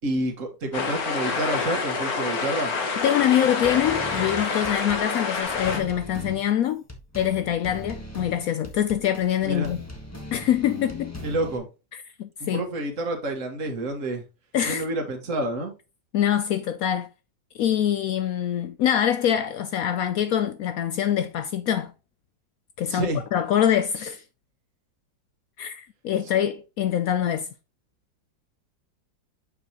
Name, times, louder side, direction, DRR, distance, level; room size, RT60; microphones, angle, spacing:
voice 1, 0.0-2.7 9.4-9.7 11.2-11.7 12.4-14.2 14.7-15.7 22.9-23.2, right 1 dB, 45° right, 1.7 m, -28 dB
sound 1, 0.7-5.8, left 4 dB, 55° left, 1.7 m, -27 dB
voice 2, 3.0-6.8 7.2-9.8 10.3-11.2 11.9-12.6 14.5-14.9 16.1-17.1 17.5-21.9 22.8-24.2 25.6-27.5, left 10 dB, 80° left, 0.7 m, -24 dB
sound 2, 3.6-11.6, left 1 dB, 10° left, 1.1 m, -40 dB
6.9 x 6.0 x 2.9 m
omnidirectional pair, 2.0 m